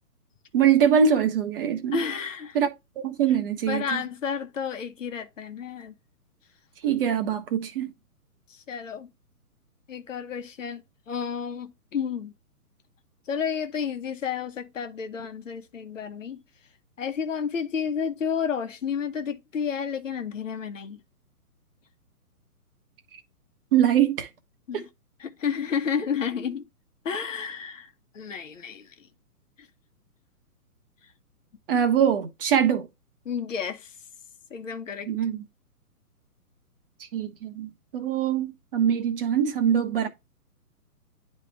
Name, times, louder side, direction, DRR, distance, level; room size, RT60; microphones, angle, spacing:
voice 1, 0.5-2.0 2.5-2.7 3.0-4.0 6.8-7.9 23.7-24.3 24.7-24.8 31.7-32.9 35.1-35.4 37.1-40.1, right 8 dB, 35° right, 1.2 m, -23 dB
voice 2, 1.9-2.6 3.7-5.9 8.5-9.1 9.9-12.3 13.3-16.4 17.0-21.0 24.7-24.9 25.2-26.7 27.0-29.1 29.6-29.7 31.0-31.1 33.2-34.0 34.5-35.1, left 7 dB, 55° left, 1.2 m, -31 dB
9.9 x 3.3 x 3.4 m
figure-of-eight pair, 135°, 45 cm